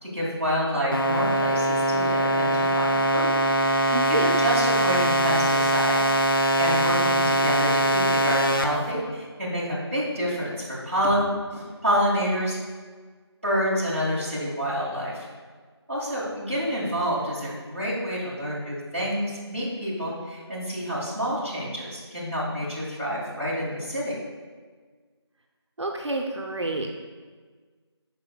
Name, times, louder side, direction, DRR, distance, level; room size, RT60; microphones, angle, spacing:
voice 1, 0.0-3.3 3.8-6.0 6.6-12.6 13.4-15.3 15.9-24.1, equal, 30° right, -8 dB, 1.6 m, -28 dB
sound 1, 0.9-8.6, right 1 dB, 50° left, 0.7 m, -22 dB
voice 2, 3.9-4.4 25.8-26.9, right 2 dB, 80° right, 1 dB, 0.7 m, -28 dB
12.0 x 4.4 x 2.2 m, 1.5 s
figure-of-eight pair, 180°, 14 cm